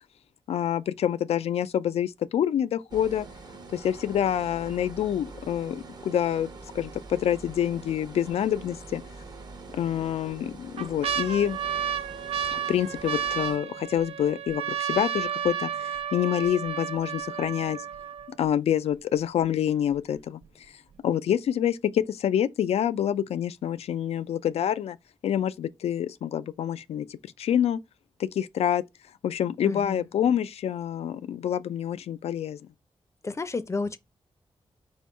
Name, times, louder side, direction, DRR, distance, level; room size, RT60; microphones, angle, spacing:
voice 1, 0.5-3.3 3.7-6.5 6.7-9.0 9.7-11.6 12.5-17.8 18.4-20.4 21.0-25.0 25.2-27.1 27.4-27.8 28.2-28.8 29.2-32.6, left 10 dB, 85° left, 0.4 m, -27 dB
sound 1, 2.9-13.6, right 3 dB, 45° right, 0.8 m, -44 dB
sound 2, 7.6-8.0 8.5-8.6 9.5-10.0 10.5-18.5 19.2-19.3 19.4-19.9 20.4-20.5, right 8 dB, 70° right, 0.4 m, -32 dB
voice 2, 29.6-30.1 33.2-34.0, left 3 dB, 30° left, 0.5 m, -31 dB
4.4 x 2.2 x 4.5 m
cardioid pair, 85°, 10 cm